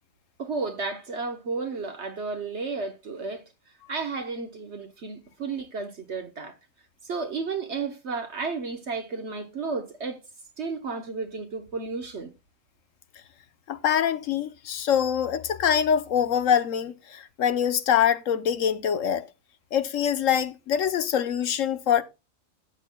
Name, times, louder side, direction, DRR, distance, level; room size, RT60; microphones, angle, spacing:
voice 1, 0.4-3.4 3.9-6.6 7.0-10.2 10.6-12.3, right 4 dB, 55° right, 1.3 m, -32 dB
voice 2, 13.7-19.2 19.7-22.0, left 8 dB, 75° left, 1.2 m, -24 dB
13.5 x 8.7 x 2.2 m
omnidirectional pair, 1.4 m